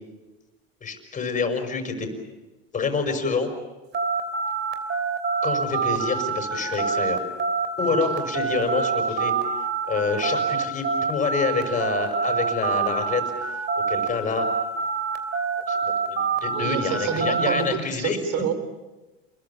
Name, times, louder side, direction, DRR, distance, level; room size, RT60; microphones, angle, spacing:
voice 1, 0.8-2.1 2.7-3.5 5.4-7.2 7.8-9.3 9.6-14.5 15.7-18.2, left 4 dB, 25° left, 6 dB, 6.0 m, -27 dB
sound 1, 3.9-14.1 14.4-17.6, right 5 dB, 35° right, 3.2 m, -26 dB
voice 2, 7.8-8.2 16.5-18.5, right 7 dB, 55° right, 11 dB, 4.1 m, -29 dB
29.5 x 22.0 x 7.3 m, 1.1 s
supercardioid pair, 120°, 30 cm